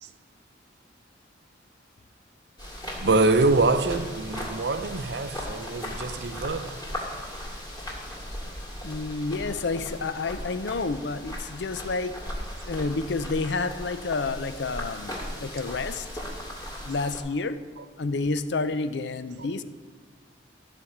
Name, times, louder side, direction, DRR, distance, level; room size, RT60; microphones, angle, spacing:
sound 1, 2.6-17.2, equal, 25° left, 2.3 m, -37 dB
voice 1, 2.9-6.9 17.8-17.9 19.4-19.5, right 3 dB, 65° right, 0.6 m, -25 dB
voice 2, 8.8-12.2 12.7-16.1 16.8-17.6 18.0-19.6, left 3 dB, 75° left, 0.6 m, -29 dB
14.5 x 5.2 x 7.2 m
head